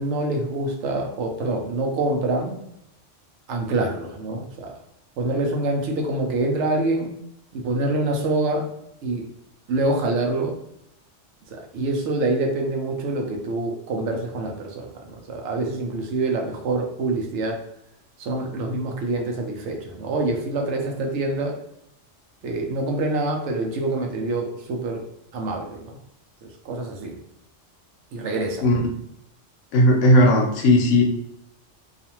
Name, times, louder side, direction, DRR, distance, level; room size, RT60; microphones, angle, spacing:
voice 1, 0.0-2.6 3.5-4.7 5.2-7.1 7.5-8.7 9.0-9.2 9.7-10.6 11.5-17.6 18.2-21.6 22.4-25.0 25.3-25.9 26.4-27.2 28.1-28.7, right 2 dB, 70° right, 2 dB, 0.8 m, -26 dB
voice 2, 29.7-31.0, left 1 dB, 80° left, 2 dB, 0.9 m, -16 dB
2.4 x 2.4 x 2.9 m, 0.78 s
omnidirectional pair, 1.3 m